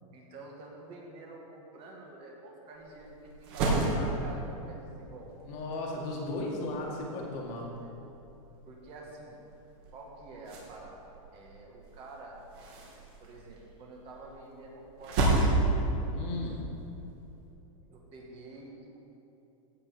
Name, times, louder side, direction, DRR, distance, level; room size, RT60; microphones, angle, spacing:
voice 1, 0.1-3.9 4.2-5.3 7.8-7.9 8.7-9.4 9.9-11.0 11.3-12.4 13.2-15.9 17.9-19.0, right 2 dB, 30° right, -1 dB, 1.8 m, -48 dB
sound 1, 2.7-17.5, right 2 dB, 50° right, 2.9 m, -34 dB
voice 2, 5.5-7.7 16.1-16.6, left 2 dB, 40° left, -1 dB, 2.0 m, -36 dB
16.0 x 5.7 x 5.8 m, 2.9 s
supercardioid pair, 150°, 18 cm